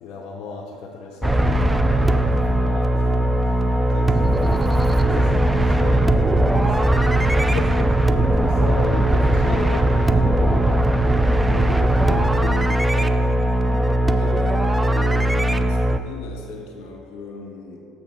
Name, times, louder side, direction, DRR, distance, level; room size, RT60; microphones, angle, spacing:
voice 1, 0.0-4.1 4.5-6.9 7.3-10.9 11.5-13.1, left 5 dB, 60° left, -2 dB, 0.8 m, -35 dB
sound 1, 1.2-16.0, right 1 dB, 10° right, 0.3 m, -19 dB
voice 2, 14.1-17.8, left 3 dB, 75° left, -1 dB, 1.6 m, -37 dB
6.9 x 6.2 x 4.6 m, 2.7 s
cardioid pair, 115°, 0 cm